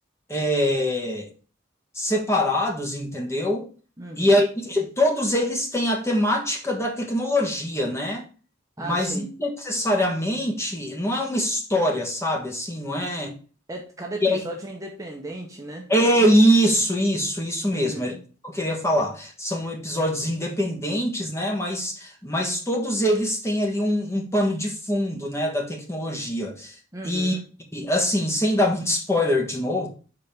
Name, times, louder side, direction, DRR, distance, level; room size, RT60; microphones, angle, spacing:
voice 1, 0.3-1.3 1.9-3.7 4.2-8.3 8.8-13.3 14.2-14.4 15.9-18.1 18.4-26.7 27.0-27.4 27.7-29.9, equal, 15° left, 1.4 m, -23 dB
voice 2, 4.0-4.4 8.8-9.4 13.7-15.9 17.7-18.2 26.9-27.4, right 1 dB, 15° right, 0.9 m, -36 dB
5.2 x 4.0 x 5.9 m
head